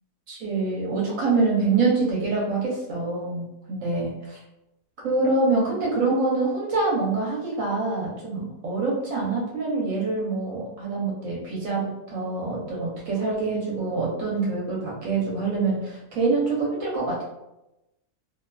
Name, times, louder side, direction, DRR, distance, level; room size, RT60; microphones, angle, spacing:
voice 1, 0.3-4.4 5.0-17.2, right 3 dB, 65° right, -4 dB, 1.1 m, -25 dB
2.6 x 2.3 x 2.2 m, 0.93 s
omnidirectional pair, 1.6 m